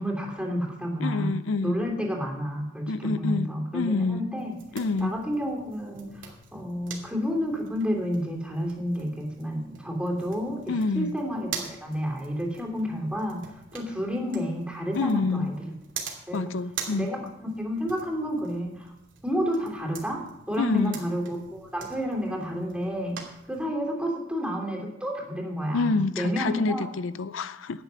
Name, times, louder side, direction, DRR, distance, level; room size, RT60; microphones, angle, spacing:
voice 1, 0.0-4.6 5.0-15.7 16.3-16.4 16.9-18.9 19.2-23.2 23.5-26.9, equal, 5° right, 3.0 m, -30 dB
voice 2, 1.0-1.8 2.9-4.3 4.7-5.1 10.7-11.2 14.9-15.5 16.3-17.1 20.6-21.0 25.7-27.8, left 3 dB, 80° left, 0.5 m, -27 dB
sound 1, 4.4-23.6, right 6 dB, 75° right, 2.9 m, -44 dB
13.0 x 9.7 x 5.6 m
head